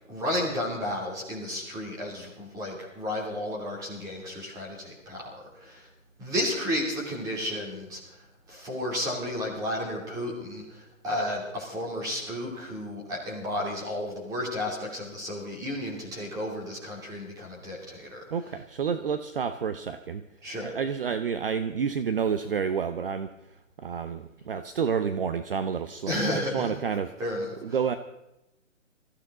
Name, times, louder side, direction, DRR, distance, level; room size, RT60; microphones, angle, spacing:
voice 1, 0.1-5.9 6.2-18.3 20.4-20.8 26.1-26.7 27.2-27.8, left 1 dB, 10° right, -2 dB, 2.9 m, -32 dB
voice 2, 18.3-20.2 20.6-27.1 27.6-28.0, right 6 dB, 45° right, 11 dB, 0.7 m, -29 dB
21.0 x 15.0 x 3.9 m, 0.92 s
hypercardioid pair, 160°, 39 cm